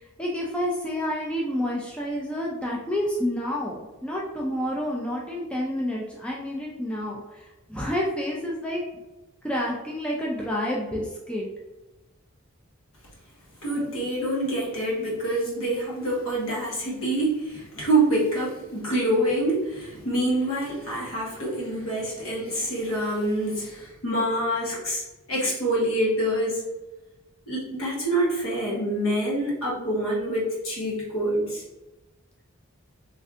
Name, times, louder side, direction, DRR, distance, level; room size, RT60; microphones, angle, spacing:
voice 1, 0.2-8.8 9.4-11.5, equal, 5° left, -4 dB, 0.3 m, -29 dB
voice 2, 13.6-26.6 27.5-31.6, right 1 dB, 70° left, -5 dB, 1.2 m, -26 dB
3.2 x 2.6 x 2.5 m, 1.0 s
head